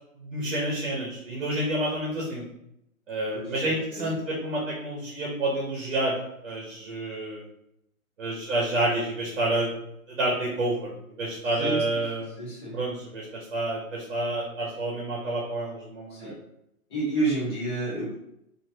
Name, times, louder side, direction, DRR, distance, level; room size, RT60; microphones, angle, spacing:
voice 1, 0.2-2.4 3.1-6.1 6.4-7.4 8.2-9.7 10.1-10.9 11.2-12.4 12.7-16.3, right 1 dB, 45° right, -3 dB, 1.0 m, -29 dB
voice 2, 3.3-4.1 11.5-12.0 12.4-12.8 16.1-16.4 16.9-18.1, right 2 dB, 20° left, -6 dB, 0.9 m, -30 dB
3.0 x 2.7 x 2.7 m, 0.79 s
hypercardioid pair, 155°, 43 cm